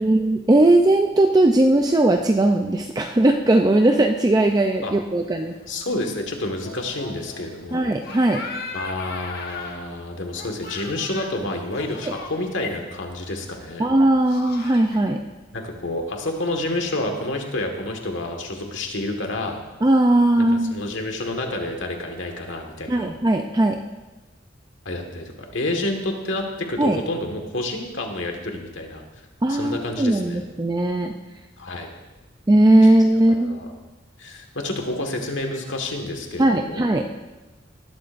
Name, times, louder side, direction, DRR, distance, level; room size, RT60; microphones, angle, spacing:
voice 1, 0.0-5.5 7.7-8.4 13.8-15.2 19.8-20.8 22.9-23.8 26.8-27.0 29.4-31.1 32.5-33.6 36.4-37.0, right 1 dB, 20° right, 3 dB, 0.5 m, -18 dB
sound 1, 4.4-15.0, left 3 dB, 55° left, 1.4 m, -40 dB
voice 2, 5.7-7.9 8.7-13.9 15.5-19.6 20.5-23.1 24.8-29.0 29.5-30.4 31.6-31.9 32.8-32.9 33.3-33.7 34.2-36.9, left 2 dB, 70° left, 3 dB, 1.7 m, -29 dB
19.0 x 12.0 x 2.6 m, 1.1 s
head